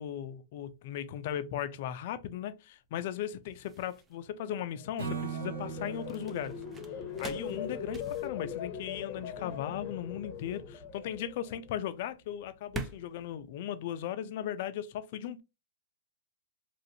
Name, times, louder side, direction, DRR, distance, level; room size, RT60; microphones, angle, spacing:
voice 1, 0.0-6.6 7.2-15.4, left 10 dB, 50° left, 0.4 m, -37 dB
sound 1, 0.7-14.6, right 3 dB, 15° right, 0.5 m, -48 dB
sound 2, 4.7-11.9 12.3-12.7, left 7 dB, 30° left, 0.8 m, -41 dB
Acoustic guitar / Strum, 5.0-8.3, right 6 dB, 65° right, 1.4 m, -41 dB
3.1 x 2.5 x 2.7 m
hypercardioid pair, 140°, 0 cm